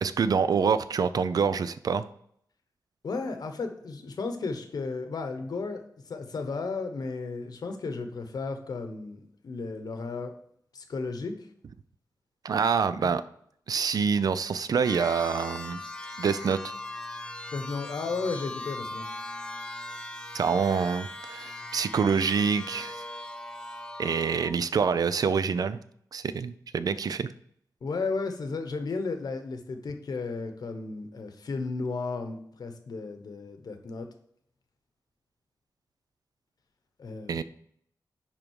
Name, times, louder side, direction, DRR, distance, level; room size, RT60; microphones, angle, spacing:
voice 1, 0.0-2.0 12.4-13.2 13.7-15.8 16.2-16.7 20.3-23.0 24.0-25.8 26.1-27.3 37.3-37.4, right 6 dB, 60° right, 14 dB, 0.4 m, -26 dB
voice 2, 3.0-10.3 10.7-11.5 13.0-13.2 17.5-19.1 27.8-34.1 37.0-37.4, left 4 dB, 65° left, 6 dB, 1.0 m, -34 dB
sound 1, 14.8-24.5, left 2 dB, 10° left, 0.8 m, -39 dB
10.0 x 3.7 x 4.6 m, 0.68 s
wide cardioid pair, 140°, 7 cm